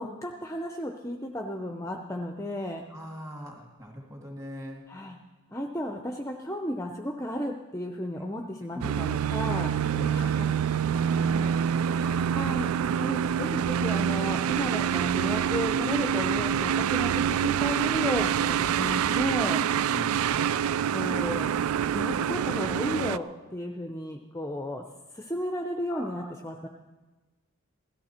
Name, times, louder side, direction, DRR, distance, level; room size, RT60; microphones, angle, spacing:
voice 1, 0.0-2.8 4.9-5.2 5.5-9.9 10.1-10.5 11.1-11.5 11.9-19.6 20.9-21.5 21.9-24.8 25.1-26.7, left 1 dB, 15° left, 3 dB, 0.6 m, -34 dB
voice 2, 2.9-4.8 8.7-8.9 9.9-10.4 10.7-11.5 19.9-20.3 25.9-26.3, equal, 15° right, 0 dB, 2.1 m, -41 dB
sound 1, 8.8-23.2, right 8 dB, 85° right, 0.3 m, -26 dB
16.5 x 13.5 x 4.3 m, 1.2 s
head